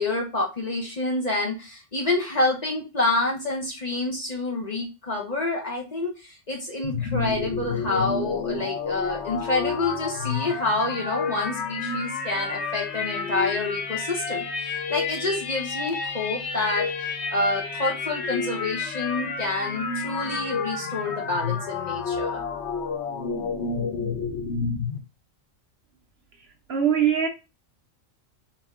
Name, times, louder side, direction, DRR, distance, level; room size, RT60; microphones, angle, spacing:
voice 1, 0.0-22.4, left 2 dB, 35° left, 0.8 m, -28 dB
sound 1, 6.8-25.0, left 5 dB, 65° left, 1.0 m, -30 dB
voice 2, 26.7-27.3, right 8 dB, 60° right, 0.8 m, -21 dB
4.2 x 2.7 x 3.5 m
omnidirectional pair, 1.4 m